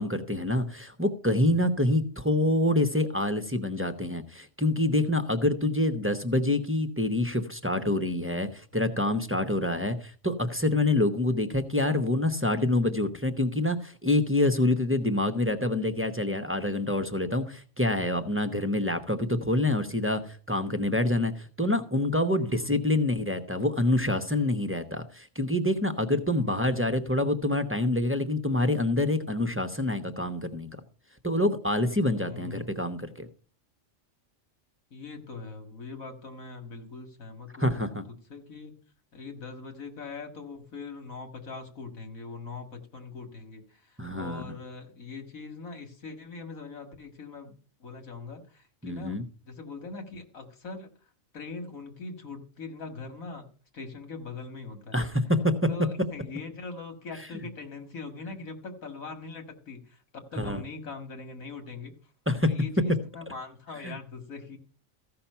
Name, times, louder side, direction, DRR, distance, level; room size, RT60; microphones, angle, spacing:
voice 1, 0.0-30.7 31.2-33.3 37.6-38.0 44.0-44.5 48.8-49.2 54.9-55.5 57.3-57.4 60.4-60.6 62.3-62.5 63.8-64.0, left 1 dB, 15° right, 7 dB, 0.6 m, -26 dB
voice 2, 22.4-23.1 26.3-26.9 32.2-32.8 34.9-37.8 38.3-38.7 39.1-47.5 47.8-49.2 49.4-50.9 51.3-53.5 53.7-55.2 55.7-61.9 62.5-64.6, left 4 dB, 80° left, 5 dB, 2.3 m, -41 dB
15.0 x 5.8 x 5.6 m, 0.39 s
omnidirectional pair, 1.4 m